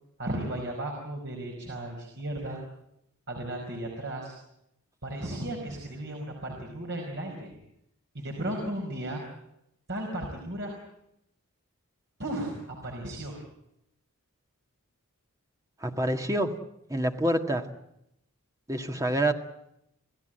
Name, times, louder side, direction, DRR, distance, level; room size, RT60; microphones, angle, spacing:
voice 1, 0.2-2.6 3.3-4.3 5.0-7.5 8.1-9.3 9.9-10.8 12.2-13.4, right 1 dB, 55° right, 1 dB, 4.9 m, -35 dB
voice 2, 15.8-16.5 16.9-17.6 18.7-19.3, right 1 dB, 15° right, 5 dB, 1.8 m, -26 dB
28.5 x 17.0 x 9.0 m, 0.80 s
head